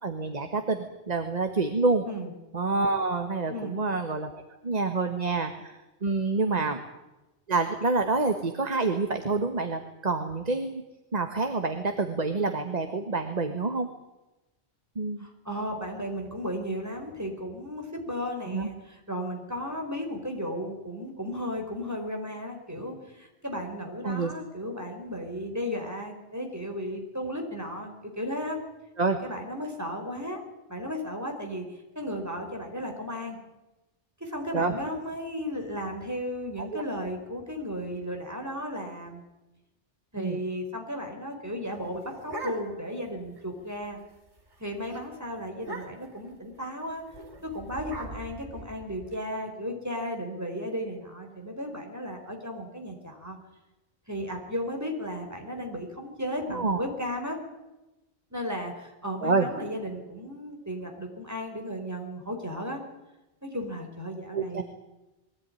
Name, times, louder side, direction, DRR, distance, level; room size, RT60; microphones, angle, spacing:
voice 1, 0.0-2.0 2.5-6.8 7.5-10.9 11.1-13.9 14.9-15.2 18.5-18.7 24.0-24.3 29.0-29.2 34.5-34.7 36.7-36.8 40.2-40.4 56.5-56.8 59.2-59.5 64.3-64.6, right 3 dB, 35° right, 6 dB, 1.6 m, -27 dB
voice 2, 3.5-3.8 6.4-6.7 15.2-28.6 29.2-30.4 30.7-33.4 34.2-39.2 40.1-44.0 44.6-47.0 47.4-53.4 54.1-57.4 58.3-62.8 63.4-64.6, equal, 15° right, 2 dB, 4.4 m, -35 dB
sound 1, 41.7-43.0 43.4-43.5 43.7-44.1 44.4-44.6 44.9-45.0 45.6-46.2 47.1-49.1, right 2 dB, 70° right, 3.9 m, -41 dB
22.5 x 16.0 x 9.9 m, 1.0 s
omnidirectional pair, 1.2 m